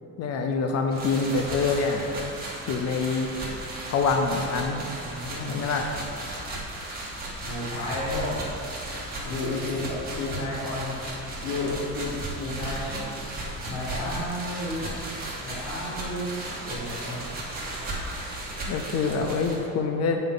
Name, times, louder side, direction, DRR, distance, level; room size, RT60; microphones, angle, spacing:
voice 1, 0.2-2.3 2.7-3.3 3.9-4.9 5.5-5.9 18.7-20.2, left 4 dB, 55° left, 3 dB, 0.5 m, -26 dB
sound 1, 0.9-19.6, right 1 dB, 30° right, 1.7 m, -35 dB
voice 2, 5.0-5.7 7.4-8.4 9.2-11.0 11.4-13.0 13.6-14.9 15.4-16.3 16.7-17.2, left 2 dB, 75° left, -7 dB, 1.6 m, -32 dB
8.7 x 5.5 x 3.8 m, 2.7 s
cardioid pair, 165°, 30 cm